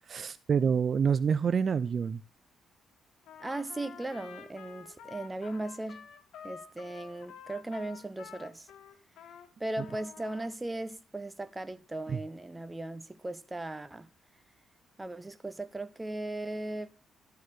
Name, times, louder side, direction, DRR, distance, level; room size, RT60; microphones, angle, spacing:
voice 1, 0.1-2.2 12.1-12.2, right 6 dB, 50° right, 0.5 m, -27 dB
Trumpet, 3.2-9.5 9.8-10.5, left 7 dB, 75° left, 1.8 m, -49 dB
voice 2, 3.4-6.1 6.4-8.7 9.6-14.1 15.0-16.9, right 2 dB, 15° right, 0.9 m, -37 dB
13.0 x 4.7 x 6.3 m
cardioid pair, 90°, 0 cm